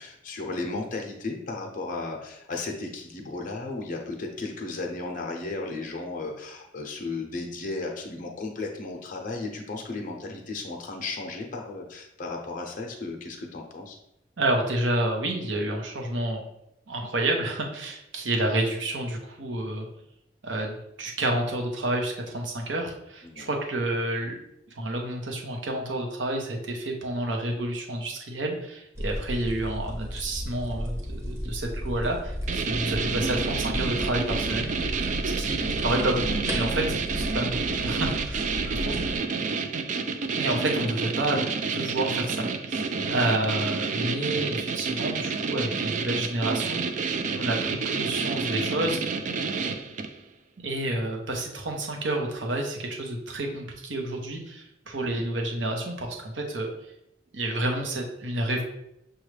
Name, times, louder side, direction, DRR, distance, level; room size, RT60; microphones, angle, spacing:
voice 1, 0.0-14.0 23.2-23.5 43.3-43.4 55.0-55.2, left 3 dB, 45° left, 1 dB, 0.6 m, -35 dB
voice 2, 14.4-16.4 16.9-19.9 20.4-24.4 24.8-39.1 40.4-41.5 41.7-49.0 50.6-56.7 57.3-58.6, right 1 dB, 80° right, 1 dB, 0.9 m, -29 dB
sound 1, 28.9-39.2, equal, 15° right, 1.0 m, -34 dB
sound 2, 32.5-50.2, right 4 dB, 40° right, 0.3 m, -29 dB
6.3 x 2.3 x 3.2 m, 0.81 s
head